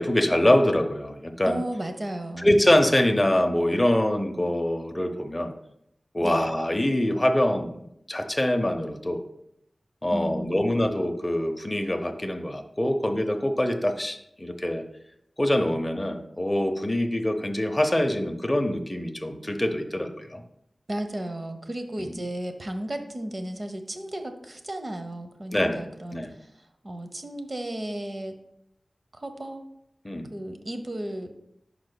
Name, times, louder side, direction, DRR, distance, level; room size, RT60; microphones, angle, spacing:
voice 1, 0.0-1.6 2.4-5.5 6.1-7.8 8.1-9.2 10.0-14.8 15.4-20.4 25.5-25.8 26.1-26.3 30.0-30.3, left 1 dB, 15° left, 4 dB, 0.7 m, -24 dB
voice 2, 1.5-2.6 6.2-6.4 10.1-10.8 20.9-26.5 26.8-28.3 29.1-29.6 30.3-31.3, right 1 dB, 40° right, 6 dB, 0.8 m, -34 dB
11.5 x 4.9 x 2.2 m, 0.77 s
wide cardioid pair, 80°, 0 cm